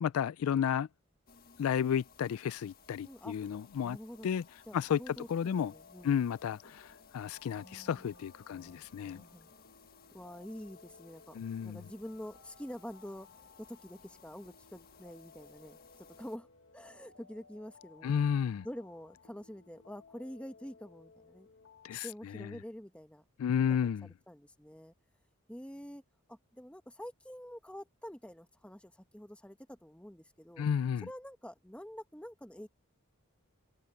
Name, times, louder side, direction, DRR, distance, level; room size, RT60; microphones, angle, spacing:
voice 1, 0.0-0.9 1.6-4.0 4.2-4.4 4.7-5.0 5.3-5.7 6.0-9.2 11.4-11.8 18.0-18.7 21.8-22.5 23.4-24.1 30.6-31.1, left 8 dB, 80° left, 0.3 m, -32 dB
sound 1, 1.3-16.4, left 5 dB, 45° left, 1.4 m, -61 dB
voice 2, 3.0-3.3 3.8-4.3 4.7-6.2 7.5-8.2 8.5-9.5 10.1-11.4 11.6-16.5 16.7-21.5 22.0-23.2 23.6-24.9 25.5-26.0 26.3-30.6 31.0-32.7, equal, 5° left, 1.3 m, -47 dB
sound 2, 5.4-22.0, left 4 dB, 65° left, 1.1 m, -60 dB
head